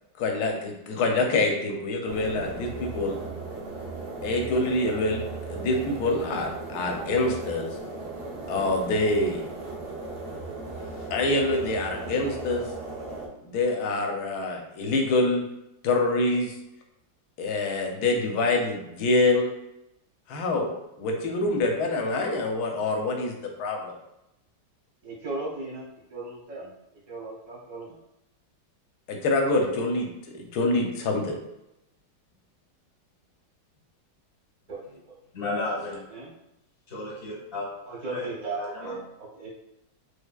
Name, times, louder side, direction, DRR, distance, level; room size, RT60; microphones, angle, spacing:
voice 1, 0.2-3.2 4.2-5.2 5.5-7.7 8.5-9.4 11.1-12.6 13.4-15.4 15.8-16.5 17.4-19.5 20.3-20.7 21.0-23.3 23.6-23.9 29.1-30.1 30.3-31.4, left 2 dB, 70° left, 2 dB, 1.1 m, -25 dB
sound 1, 2.1-13.3, right 3 dB, 90° right, 0.5 m, -37 dB
voice 2, 25.0-26.7 27.1-28.0 34.7-35.2 36.1-36.3 37.8-39.5, right 3 dB, 35° right, -4 dB, 0.7 m, -37 dB
voice 3, 35.3-36.0 36.9-37.8 38.1-38.3 38.6-38.9, left 2 dB, 40° left, -4 dB, 1.0 m, -33 dB
3.4 x 3.3 x 2.2 m, 0.87 s
omnidirectional pair, 1.9 m